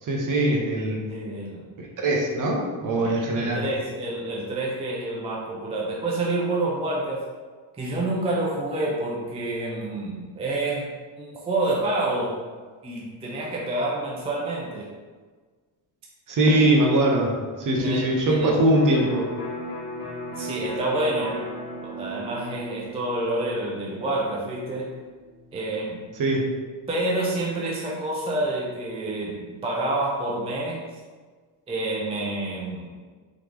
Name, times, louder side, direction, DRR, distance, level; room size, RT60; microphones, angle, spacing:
voice 1, 0.0-1.0 1.8-3.7 16.3-19.3 26.2-26.5, right 1 dB, 45° right, 0 dB, 0.8 m, -22 dB
voice 2, 1.1-1.6 3.4-7.3 7.8-10.9 11.2-12.4 12.8-14.9 17.7-18.6 20.3-21.4 21.8-25.0 25.5-26.0 26.9-30.8 31.7-32.9, right 2 dB, 15° right, -4 dB, 0.4 m, -28 dB
Electric guitar, 18.7-26.4, equal, 25° left, 1.0 m, -37 dB
3.9 x 3.0 x 3.3 m, 1.4 s
cardioid pair, 150°, 46 cm